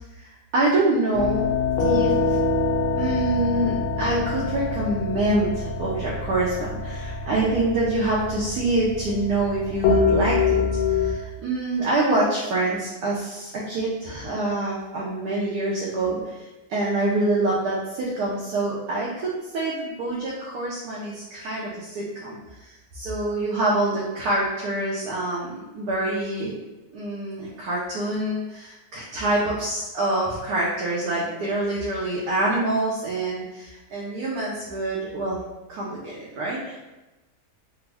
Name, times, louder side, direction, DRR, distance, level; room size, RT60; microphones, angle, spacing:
voice 1, 0.2-1.5 1.8-2.4 3.0-10.6 10.9-26.6 26.9-35.4 35.7-36.8, right 2 dB, 85° right, -6 dB, 1.1 m, -26 dB
sound 1, 1.1-11.1, left 4 dB, 85° left, 1.1 m, -25 dB
3.4 x 2.0 x 3.3 m, 1.1 s
omnidirectional pair, 1.6 m